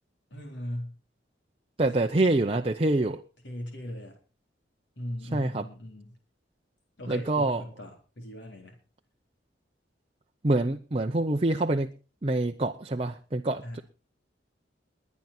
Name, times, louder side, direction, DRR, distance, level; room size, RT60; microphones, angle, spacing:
voice 1, 0.3-1.0 3.4-4.2 5.0-6.1 7.0-8.8 13.6-13.8, left 1 dB, 75° left, 3.9 m, -38 dB
voice 2, 1.8-3.2 5.3-5.7 7.1-7.6 10.4-11.9 12.2-13.8, right 2 dB, 30° right, 0.7 m, -26 dB
21.5 x 9.5 x 4.4 m
head